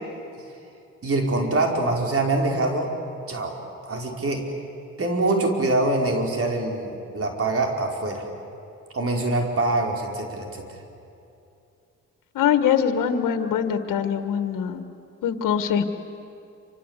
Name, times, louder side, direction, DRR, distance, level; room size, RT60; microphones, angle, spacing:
voice 1, 1.0-2.9 3.3-3.5 3.8-4.4 5.0-8.2 8.9-10.8, right 2 dB, 45° right, 1 dB, 5.3 m, -24 dB
voice 2, 12.4-14.8 15.2-15.8, left 8 dB, 80° left, 8 dB, 1.8 m, -23 dB
27.5 x 25.5 x 8.4 m, 2.7 s
cardioid pair, 70°, 32 cm